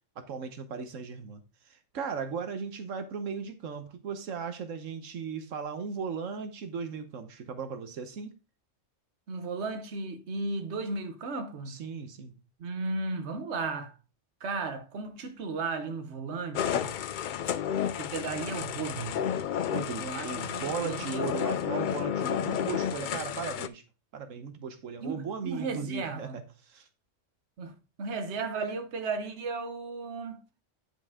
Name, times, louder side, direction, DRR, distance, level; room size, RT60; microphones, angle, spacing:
voice 1, 0.2-1.4 1.7-8.3 11.7-12.3 19.6-23.8 24.1-26.9, right 6 dB, 85° right, 1.3 m, -37 dB
voice 2, 9.3-11.8 12.6-14.0 14.4-17.0 18.0-19.2 20.0-21.3 25.0-26.4 27.6-30.4, right 3 dB, 60° right, 1.3 m, -35 dB
sound 1, 16.5-23.7, left 9 dB, 65° left, 0.5 m, -31 dB
9.8 x 5.4 x 3.6 m
omnidirectional pair, 1.3 m